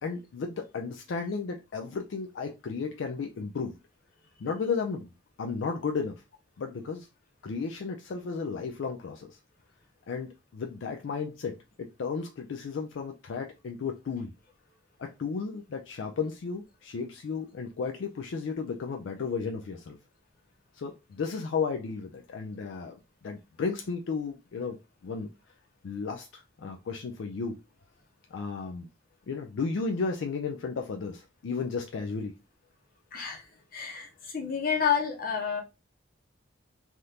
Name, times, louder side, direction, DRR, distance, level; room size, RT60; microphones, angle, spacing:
voice 1, 0.0-3.8 4.4-5.1 5.4-6.2 6.6-7.1 7.4-9.4 10.1-14.3 15.0-20.0 20.8-22.9 23.2-24.8 25.0-25.3 25.8-27.6 28.3-28.9 29.3-32.3, left 5 dB, 65° left, 3 dB, 0.4 m, -34 dB
voice 2, 33.1-33.4 33.7-35.6, left 7 dB, 45° left, 2 dB, 0.8 m, -29 dB
3.4 x 2.4 x 2.8 m, 0.26 s
head